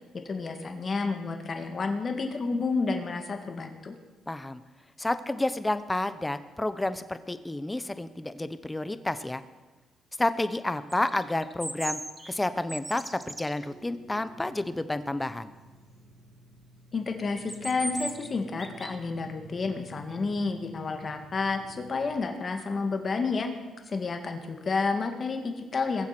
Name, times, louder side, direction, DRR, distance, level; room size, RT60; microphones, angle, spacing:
voice 1, 0.3-3.9 16.9-23.5 23.9-26.1, left 4 dB, 40° left, 5 dB, 2.0 m, -30 dB
voice 2, 4.3-4.6 5.0-9.4 10.2-12.0 12.3-15.5, left 2 dB, 15° left, 12 dB, 0.9 m, -30 dB
sound 1, 10.9-13.6 17.3-18.3 18.6-19.0, right 1 dB, 10° right, 1.1 m, -37 dB
sound 2, 13.6-22.2, equal, 85° right, 5.9 m, -51 dB
22.0 x 7.4 x 6.0 m, 1.3 s
cardioid pair, 90°, 0 cm